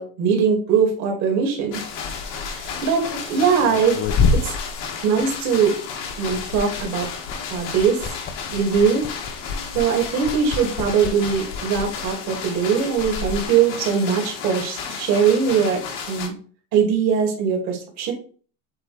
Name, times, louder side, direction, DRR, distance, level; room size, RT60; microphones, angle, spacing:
voice 1, 0.0-1.8 2.5-4.0 4.3-4.5 5.0-5.7 6.2-7.1 7.5-8.0 8.5-9.0 9.7-15.8 16.1-16.3 16.7-18.1, right 6 dB, 40° right, 1 dB, 2.0 m, -21 dB
sound 1, 1.7-16.3, left 6 dB, 50° left, 1.6 m, -33 dB
Liquid, 1.9-5.6 5.9-13.4, left 4 dB, 25° left, 0.6 m, -28 dB
7.8 x 2.6 x 4.7 m, 0.42 s
cardioid pair, 160°, 41 cm